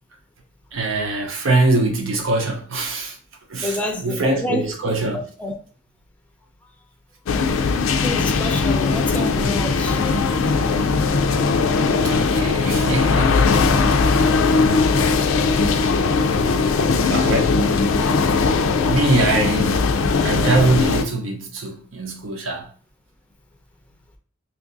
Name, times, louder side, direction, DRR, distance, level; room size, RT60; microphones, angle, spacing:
voice 1, 0.7-3.2 3.5-5.2 11.9-13.5 14.1-15.7 16.1-16.3 17.0-17.7 18.8-22.7, right 2 dB, 70° right, 0.8 m, -23 dB
voice 2, 3.6-4.7 5.4-5.5 8.0-10.0, left 1 dB, 5° left, 0.5 m, -29 dB
sound 1, 7.3-21.0, left 4 dB, 75° left, 0.4 m, -19 dB
2.7 x 2.5 x 3.9 m
head